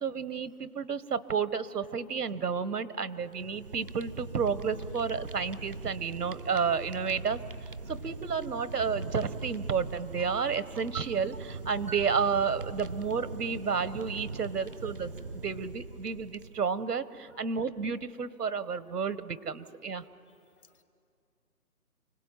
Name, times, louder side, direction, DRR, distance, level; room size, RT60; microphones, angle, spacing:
voice 1, 0.0-7.4 7.9-15.1 15.4-20.0, right 6 dB, 90° right, 14 dB, 1.5 m, -31 dB
Fire, 3.2-16.8, right 3 dB, 35° right, 0.6 m, -41 dB
voice 2, 3.5-3.8 7.9-8.0 14.6-14.8 17.3-17.5 18.9-19.0 19.6-19.7 20.0-20.4, left 3 dB, 65° left, 9 dB, 2.0 m, -64 dB
29.0 x 18.5 x 9.2 m, 2.6 s
hypercardioid pair, 170°, 45 cm